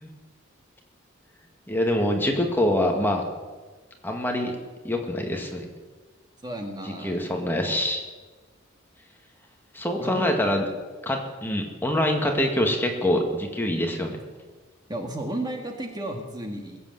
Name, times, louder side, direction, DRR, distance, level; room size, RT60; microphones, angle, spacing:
voice 1, 1.7-3.2 4.0-4.5 4.8-5.7 7.0-8.0 9.7-10.6 11.0-14.2, left 1 dB, 10° left, 2 dB, 1.9 m, -25 dB
voice 2, 6.4-7.3 7.6-7.8 10.0-10.2 14.9-16.8, right 1 dB, 20° right, 3 dB, 1.8 m, -33 dB
21.0 x 8.3 x 8.0 m, 1.3 s
head